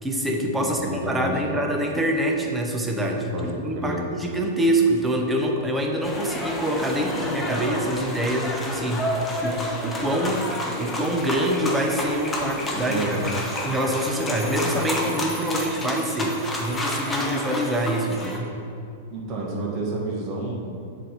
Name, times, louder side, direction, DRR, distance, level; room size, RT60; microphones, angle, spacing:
voice 1, 0.0-3.3 3.6-13.2 13.6-18.5, right 1 dB, 10° right, 1 dB, 0.9 m, -25 dB
voice 2, 0.6-1.6 3.3-4.0 12.9-13.3 19.1-20.8, right 2 dB, 40° right, -2 dB, 1.4 m, -30 dB
sound 1, 6.0-18.4, left 1 dB, 15° left, 1.0 m, -30 dB
7.4 x 3.5 x 5.9 m, 2.6 s
hypercardioid pair, 115°, 0 cm